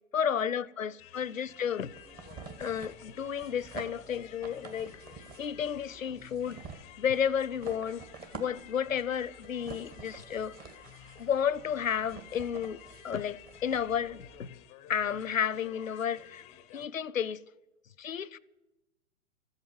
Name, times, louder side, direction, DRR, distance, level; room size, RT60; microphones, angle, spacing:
voice 1, 0.1-1.9 2.6-5.0 5.4-6.6 7.0-8.0 8.3-10.6 11.2-12.8 13.0-14.5 14.9-16.4 16.7-17.4 18.0-18.4, left 8 dB, 85° left, 0.6 m, -32 dB
sound 1, 1.0-16.9, left 12 dB, 15° left, 0.6 m, -53 dB
sound 2, 1.9-14.5, right 5 dB, 25° right, 1.5 m, -49 dB
14.0 x 8.1 x 9.6 m
figure-of-eight pair, 115°, 38 cm